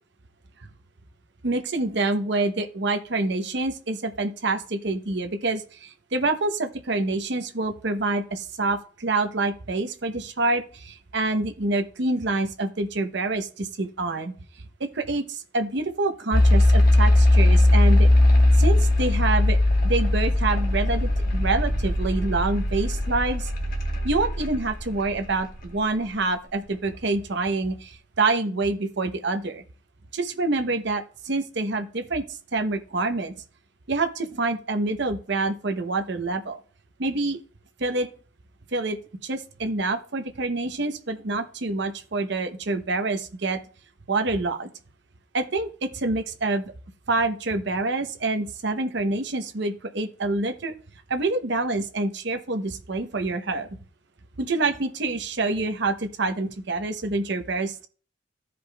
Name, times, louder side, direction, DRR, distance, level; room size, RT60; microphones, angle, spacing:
voice 1, 1.4-14.3 14.8-18.1 18.5-19.6 19.8-23.5 24.0-29.6 30.1-32.2 32.5-33.3 33.9-36.6 37.0-37.4 37.8-38.1 38.7-39.0 39.2-43.6 44.1-44.7 45.3-46.7 47.1-50.7 51.1-53.7 54.4-57.9, right 2 dB, 60° right, 6 dB, 0.8 m, -26 dB
sound 1, 16.3-25.4, left 1 dB, 45° left, 1.3 m, -19 dB
15.0 x 5.1 x 2.3 m, 0.41 s
head